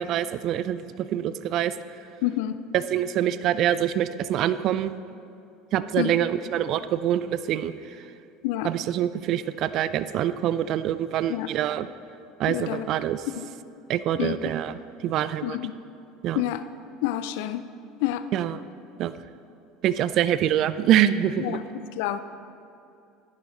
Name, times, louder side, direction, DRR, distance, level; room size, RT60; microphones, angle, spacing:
voice 1, 0.0-1.7 2.7-4.9 5.7-7.7 8.6-11.9 12.4-13.2 13.9-15.6 16.2-16.4 18.3-18.6 19.0-19.1 19.8-21.6, right 11 dB, 55° right, 14 dB, 0.4 m, -25 dB
voice 2, 2.2-2.6 6.0-6.2 8.4-8.7 11.3-11.5 12.5-12.9 13.4-13.5 14.1-14.4 15.4-15.7 16.3-16.6 17.0-17.7 18.0-18.3 21.4-22.2, left 14 dB, 70° left, 12 dB, 0.4 m, -28 dB
10.5 x 9.7 x 3.9 m, 2.7 s
hypercardioid pair, 80°, 0 cm